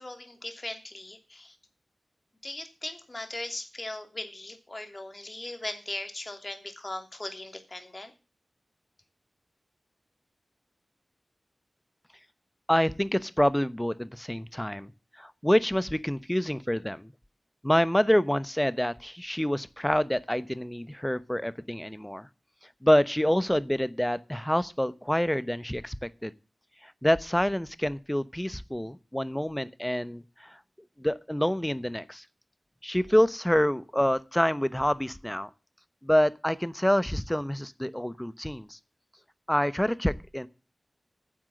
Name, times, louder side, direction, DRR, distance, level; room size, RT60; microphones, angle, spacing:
voice 1, 0.0-1.6 2.4-8.1, left 2 dB, 35° left, 2.9 m, -39 dB
voice 2, 12.7-14.9 15.2-17.1 17.6-22.3 22.8-26.0 26.2-26.3 26.8-30.6 31.0-32.2 32.8-35.5 36.0-38.8 39.5-40.5, equal, 10° left, 0.9 m, -27 dB
10.0 x 7.4 x 7.7 m
cardioid pair, 40°, 0 cm